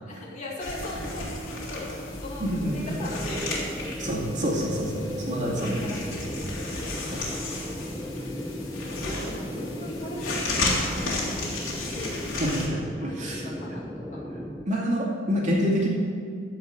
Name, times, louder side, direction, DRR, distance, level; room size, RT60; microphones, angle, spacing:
voice 1, 0.0-2.4 2.7-3.7 5.8-7.2 7.5-7.8 8.4-8.7 9.0-12.2 13.0-14.2, left 1 dB, 35° left, -5 dB, 2.6 m, -39 dB
sound 1, 0.6-12.7, left 2 dB, 70° left, 3.3 m, -33 dB
voice 2, 2.4-2.8 4.0-5.9 6.7-6.8 7.1-7.3 12.3-13.4 14.7-15.9, equal, 35° right, -3 dB, 2.4 m, -27 dB
sound 2, 2.6-14.6, equal, ahead, 0.5 m, -36 dB
15.0 x 5.7 x 7.8 m, 2.2 s
head